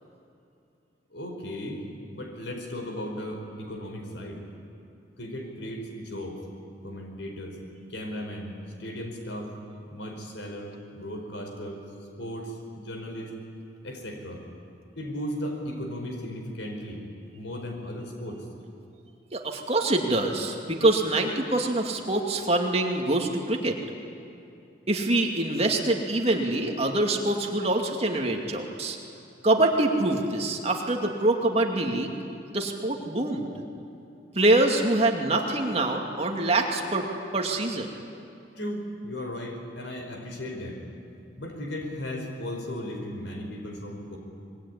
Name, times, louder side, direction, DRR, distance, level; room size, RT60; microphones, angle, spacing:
voice 1, 1.1-1.8 2.1-4.4 5.2-6.4 6.8-7.6 7.9-8.5 8.8-9.5 9.9-11.8 12.2-13.3 13.8-14.4 15.0-17.0 17.3-18.4 38.6-40.8 41.4-44.2, equal, 75° left, 3 dB, 4.9 m, -36 dB
voice 2, 19.3-23.8 24.9-29.0 29.4-32.2 32.5-33.5 34.3-37.0 37.3-37.9, right 2 dB, 35° right, 2 dB, 2.5 m, -25 dB
25.0 x 22.0 x 10.0 m, 2.6 s
head